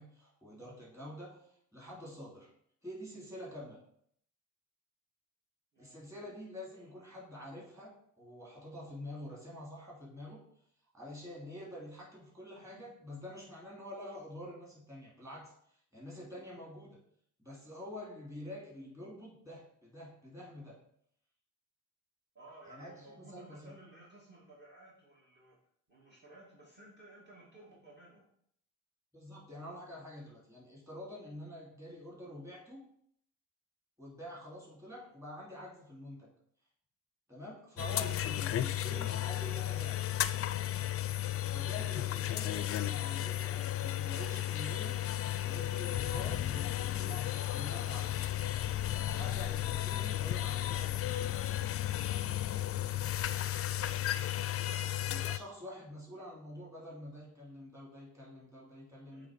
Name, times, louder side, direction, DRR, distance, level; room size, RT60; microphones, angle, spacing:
voice 1, 0.0-1.4 1.7-2.5 2.8-3.8 5.8-10.4 10.9-17.0 17.4-20.8 22.7-23.7 29.1-32.8 34.0-36.3 37.3-40.0 41.5-45.0 45.4-48.3 49.0-51.7 55.0-59.3, left 1 dB, 10° right, -4 dB, 3.1 m, -47 dB
voice 2, 22.3-25.6 25.9-28.3 34.9-35.1 49.7-50.0 53.1-53.9 54.8-55.1 59.1-59.3, right 2 dB, 35° right, -4 dB, 2.4 m, -57 dB
sound 1, 37.8-55.4, left 12 dB, 50° left, 0.4 m, -34 dB
7.6 x 3.4 x 5.2 m, 0.68 s
cardioid pair, 90°, 30 cm